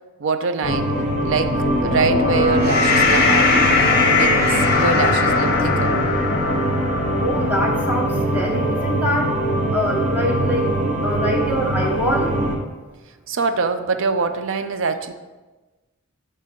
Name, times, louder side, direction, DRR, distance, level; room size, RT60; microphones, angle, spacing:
voice 1, 0.2-0.9 1.2-3.6 4.1-6.0 13.3-15.1, right 4 dB, 65° right, 9 dB, 0.5 m, -24 dB
sound 1, 0.6-12.6, right 1 dB, 40° right, 1.0 m, -22 dB
sound 2, 1.5-8.0, left 4 dB, 45° left, 0.8 m, -20 dB
voice 2, 7.2-9.4 9.7-10.7 11.0-12.4, equal, 10° right, -1 dB, 0.9 m, -24 dB
7.6 x 3.2 x 5.1 m, 1.2 s
head